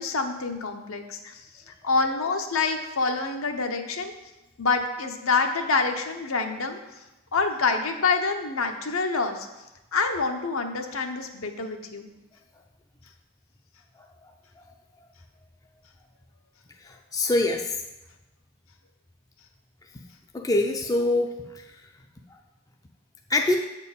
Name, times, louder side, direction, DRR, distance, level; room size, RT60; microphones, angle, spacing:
voice 1, 0.0-4.1 4.6-6.8 7.3-9.5 9.9-12.1, left 4 dB, 70° left, 5 dB, 0.9 m, -27 dB
voice 2, 16.8-17.7 20.3-21.3 23.3-23.6, left 2 dB, 15° left, 2 dB, 0.5 m, -24 dB
7.9 x 4.4 x 7.1 m, 0.99 s
head